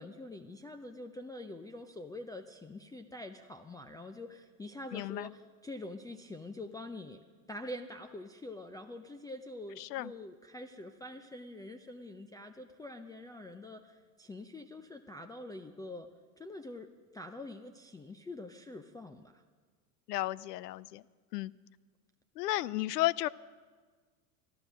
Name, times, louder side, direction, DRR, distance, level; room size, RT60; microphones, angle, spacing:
voice 1, 0.0-7.2 7.5-16.1 16.4-19.4, left 1 dB, 10° left, 3 dB, 0.4 m, -45 dB
voice 2, 4.9-5.3 9.8-10.1 20.1-21.0 21.3-21.5 22.4-23.3, left 17 dB, 80° left, 21 dB, 0.5 m, -33 dB
14.0 x 12.0 x 6.2 m, 1.5 s
hypercardioid pair, 90°, 47 cm